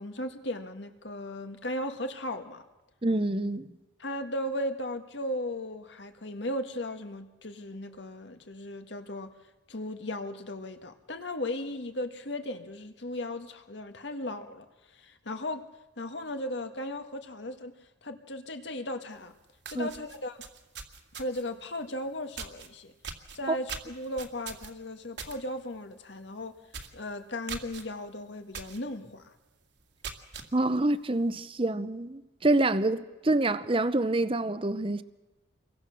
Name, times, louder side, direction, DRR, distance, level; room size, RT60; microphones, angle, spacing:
voice 1, 0.0-2.6 4.0-9.3 9.7-14.7 14.9-15.7 16.0-17.8 18.0-19.3 19.7-20.4 21.1-22.9 23.3-26.6 26.9-29.3, left 1 dB, 70° left, 1.7 m, -36 dB
voice 2, 3.0-3.7 19.7-19.9 23.5-23.6 30.5-35.0, right 2 dB, 30° right, 0.8 m, -27 dB
sound 1, 19.2-19.3 19.6-21.5 22.4-22.7 23.0-25.4 25.7-26.0 26.3-26.4 26.7-27.0 27.5-27.8 28.5-28.8 29.2-29.3 29.8-30.5, right 6 dB, 65° right, 2.2 m, -40 dB
28.5 x 23.0 x 6.4 m
head